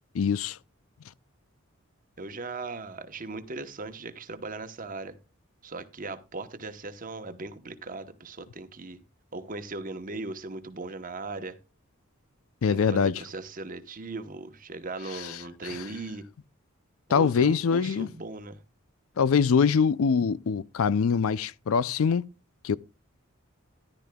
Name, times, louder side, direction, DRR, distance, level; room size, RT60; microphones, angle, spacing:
voice 1, 0.2-0.6 12.6-13.1 15.1-15.2 15.6-15.8 17.1-18.1 19.2-22.2 22.6-22.8, left 6 dB, 80° left, 0.4 m, -23 dB
voice 2, 2.2-5.1 5.6-9.0 9.3-11.6 12.7-16.3 17.1-18.6, right 3 dB, 40° right, 1.0 m, -38 dB
14.0 x 11.0 x 2.3 m
head